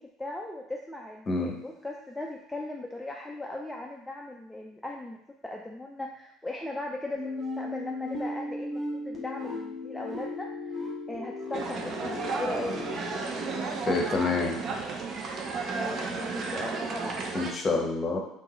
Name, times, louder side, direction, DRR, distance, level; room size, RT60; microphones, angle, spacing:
voice 1, 0.0-10.8 11.1-12.8 15.7-17.5, left 2 dB, 5° left, 0 dB, 0.4 m, -38 dB
sound 1, 7.1-14.2, left 2 dB, 25° right, 1.1 m, -37 dB
sound 2, 11.5-17.5, right 4 dB, 40° right, 0.6 m, -33 dB
voice 2, 13.9-14.6 17.3-18.2, left 3 dB, 30° left, 1 dB, 0.8 m, -27 dB
3.6 x 3.2 x 2.9 m, 0.77 s
figure-of-eight pair, 60°, 0 cm